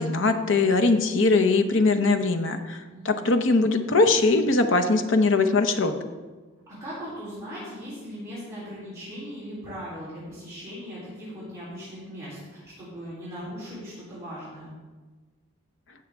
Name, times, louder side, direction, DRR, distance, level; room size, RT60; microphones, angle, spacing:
voice 1, 0.0-5.9, left 3 dB, 60° left, 7 dB, 0.8 m, -21 dB
voice 2, 2.9-3.3 6.7-14.7, equal, 15° right, -11 dB, 3.5 m, -39 dB
17.0 x 6.4 x 3.5 m, 1.3 s
head